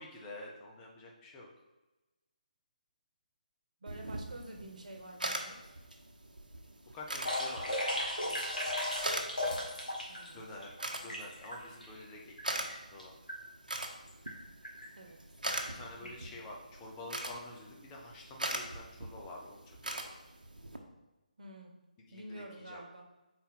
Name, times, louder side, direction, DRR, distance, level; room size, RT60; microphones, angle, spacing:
voice 1, 0.0-1.5 6.9-8.4 10.3-10.7 11.0-13.1 15.4-20.1 22.1-22.8, left 2 dB, 15° left, -1 dB, 0.9 m, -48 dB
voice 2, 3.8-5.8 10.1-10.4 10.9-11.0 15.0-15.2 16.0-16.1 21.4-21.7 22.1-23.0, right 1 dB, 60° right, 3 dB, 1.3 m, -49 dB
sound 1, 3.9-20.8, right 1 dB, 75° right, 0.9 m, -42 dB
sound 2, 7.3-10.3 10.6-11.9 12.4-12.5 12.7-13.0 13.3-13.4 14.1-14.3 14.6-14.9 15.5-15.6 16.1-16.2, left 1 dB, 75° left, 1.8 m, -36 dB
5.4 x 4.3 x 4.4 m, 1.1 s
figure-of-eight pair, 150°, 5 cm